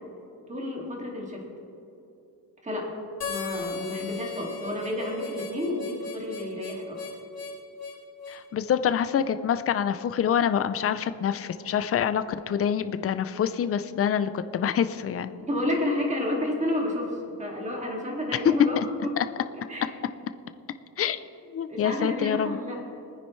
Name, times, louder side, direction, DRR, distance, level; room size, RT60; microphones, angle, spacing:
voice 1, 0.5-1.5 2.6-2.9 3.3-7.0 15.4-18.8 19.0-19.2 19.7-19.9 21.7-22.8, left 1 dB, 20° right, -1 dB, 2.2 m, -30 dB
Harmonica, 3.2-8.4, left 5 dB, 65° left, 2.4 m, -37 dB
voice 2, 8.3-15.3 18.8-18.9 19.2-19.3 21.0-21.2 21.5-22.6, left 8 dB, 35° left, 11 dB, 0.5 m, -26 dB
21.0 x 9.8 x 3.2 m, 2.8 s
cardioid pair, 140°, 38 cm